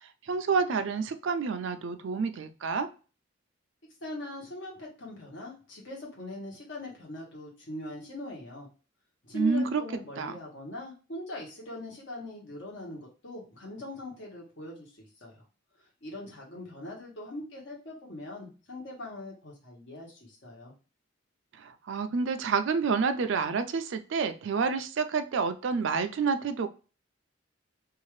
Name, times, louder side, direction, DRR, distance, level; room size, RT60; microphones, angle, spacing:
voice 1, 0.0-2.9 9.3-9.8 10.2-10.4 21.6-26.7, right 5 dB, 70° right, 9 dB, 0.4 m, -29 dB
voice 2, 4.0-8.7 9.2-15.3 16.0-20.7, left 1 dB, 65° left, -2 dB, 1.2 m, -41 dB
2.7 x 2.4 x 3.1 m, 0.35 s
head